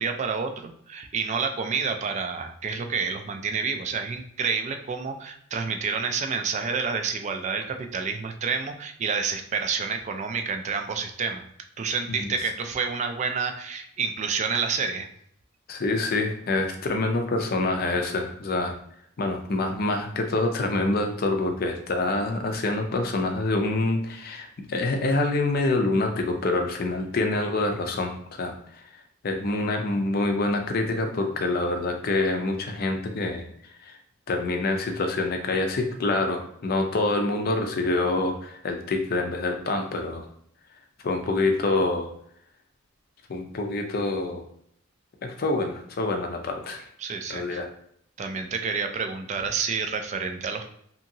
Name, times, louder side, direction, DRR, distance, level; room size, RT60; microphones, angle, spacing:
voice 1, 0.0-11.4 11.8-15.1 47.0-47.6 48.2-50.7, right 5 dB, 35° right, 6 dB, 0.3 m, -29 dB
voice 2, 15.7-18.7 19.2-28.8 29.2-33.5 33.8-33.9 34.3-40.3 41.0-42.1 43.3-44.5 45.2-46.9 47.3-47.7, left 2 dB, 50° left, 3 dB, 0.5 m, -26 dB
2.8 x 2.6 x 2.6 m, 0.68 s
head